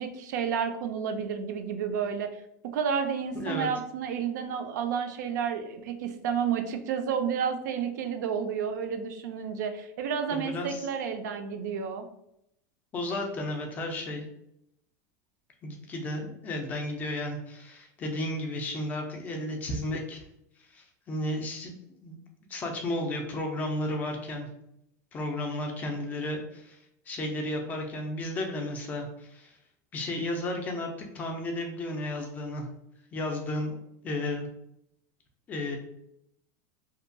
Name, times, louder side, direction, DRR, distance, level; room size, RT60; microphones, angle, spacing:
voice 1, 0.0-2.3 2.7-12.1, right 7 dB, 85° right, 7 dB, 0.4 m, -31 dB
voice 2, 3.3-3.7 10.3-10.9 12.9-14.3 15.6-20.2 20.7-21.8 22.0-22.2 22.5-24.5 25.1-26.8 27.1-29.6 29.9-32.7 33.1-33.8 34.0-34.5 35.5-35.8, left 1 dB, 15° left, 2 dB, 0.3 m, -33 dB
2.7 x 2.2 x 2.5 m, 0.77 s
supercardioid pair, 170°, 9 cm